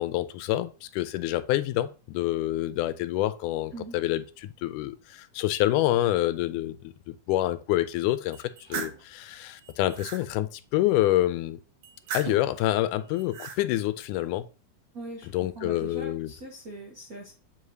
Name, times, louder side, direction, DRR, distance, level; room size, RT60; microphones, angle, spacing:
voice 1, 0.0-11.6 12.1-14.5 15.3-16.3, left 15 dB, 85° left, 2.0 m, -27 dB
sound 1, 8.3-9.0 9.6-10.2 11.8-12.5 13.1-13.6, right 7 dB, 70° right, 1.7 m, -37 dB
voice 2, 14.9-15.3 15.5-17.3, right 2 dB, 85° right, 0.7 m, -41 dB
7.3 x 4.8 x 2.7 m
omnidirectional pair, 3.6 m